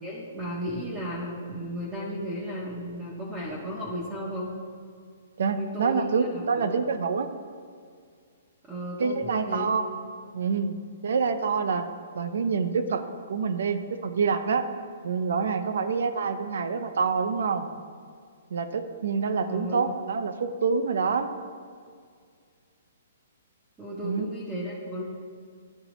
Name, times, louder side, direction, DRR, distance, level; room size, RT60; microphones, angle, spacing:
voice 1, 0.0-4.5 5.5-6.8 8.7-9.7 19.5-19.9 23.8-25.0, equal, 10° right, -6 dB, 0.6 m, -34 dB
voice 2, 5.4-7.3 9.0-9.9 10.3-11.9 12.1-13.0 13.3-14.7 15.0-17.7 18.5-21.3 24.0-24.3, right 5 dB, 65° right, 10 dB, 0.5 m, -27 dB
11.0 x 3.9 x 3.0 m, 2.1 s
hypercardioid pair, 175°, 0 cm